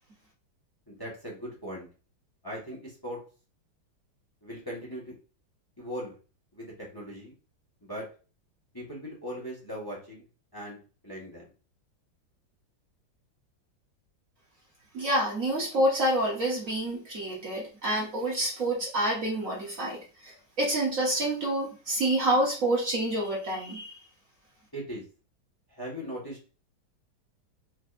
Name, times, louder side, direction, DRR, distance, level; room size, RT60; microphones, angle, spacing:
voice 1, 0.9-1.9 2.4-3.2 4.4-5.1 5.8-6.1 6.5-7.3 7.8-8.0 8.7-10.2 10.5-10.8 11.0-11.5 24.7-25.0 25.8-26.4, equal, 15° left, -3 dB, 1.4 m, -39 dB
voice 2, 14.9-24.0, right 1 dB, 50° right, -3 dB, 1.3 m, -28 dB
4.9 x 4.0 x 2.6 m, 0.36 s
omnidirectional pair, 2.1 m